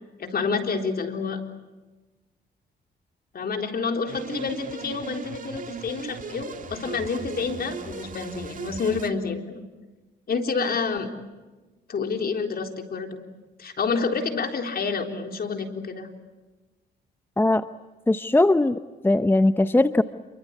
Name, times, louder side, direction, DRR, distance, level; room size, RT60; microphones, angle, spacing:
voice 1, 0.2-1.4 3.3-9.6 10.3-11.1 11.9-13.2 13.6-16.1, left 4 dB, 50° left, 5 dB, 3.9 m, -28 dB
sound 1, 4.1-9.1, right 5 dB, 40° right, 2.3 m, -38 dB
voice 2, 18.1-20.0, left 2 dB, 10° left, 11 dB, 0.8 m, -20 dB
28.0 x 24.0 x 8.4 m, 1.2 s
cardioid pair, 90°, 20 cm